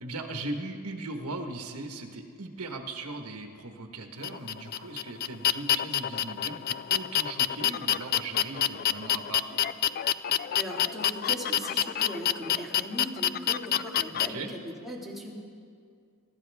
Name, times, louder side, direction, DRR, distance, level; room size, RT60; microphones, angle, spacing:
voice 1, 0.0-9.6 14.1-14.5, right 2 dB, 80° right, 4 dB, 1.3 m, -38 dB
sound 1, 4.2-14.3, left 10 dB, 40° left, 0.3 m, -27 dB
voice 2, 10.6-15.3, equal, ahead, -4 dB, 2.1 m, -38 dB
23.5 x 12.5 x 3.5 m, 2.2 s
head